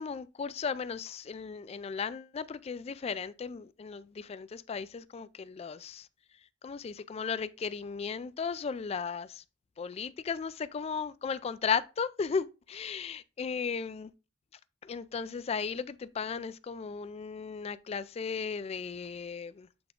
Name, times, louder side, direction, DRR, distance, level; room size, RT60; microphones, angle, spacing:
voice 1, 0.0-6.1 6.6-9.4 9.8-14.1 14.8-19.7, left 6 dB, 35° left, 0.3 m, -35 dB
7.8 x 3.5 x 3.6 m
head